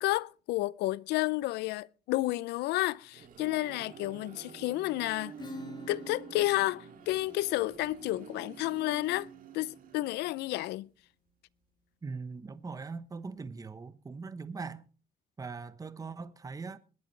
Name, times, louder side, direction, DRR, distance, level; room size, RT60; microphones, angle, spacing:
voice 1, 0.0-5.3 5.9-9.3 9.5-10.9, left 18 dB, 80° left, 0.5 m, -31 dB
sound 1, 2.8-10.5, right 8 dB, 55° right, 2.4 m, -49 dB
Acoustic guitar / Strum, 5.4-10.8, left 2 dB, 25° left, 2.5 m, -50 dB
voice 2, 12.0-14.8 15.4-16.8, right 4 dB, 20° right, 1.0 m, -41 dB
20.5 x 11.5 x 3.3 m
cardioid pair, 110°, 17 cm